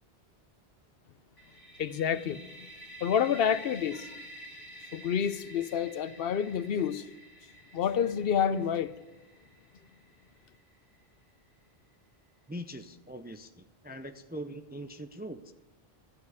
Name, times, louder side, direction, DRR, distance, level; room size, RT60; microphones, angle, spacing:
sound 1, 1.4-11.1, right 1 dB, 15° left, 3.6 m, -50 dB
voice 1, 1.8-2.5 3.0-4.1 4.9-7.0 7.7-8.9, left 8 dB, 70° left, 0.9 m, -28 dB
voice 2, 12.5-15.5, equal, 15° right, 0.4 m, -42 dB
13.5 x 6.6 x 8.3 m
omnidirectional pair, 1.0 m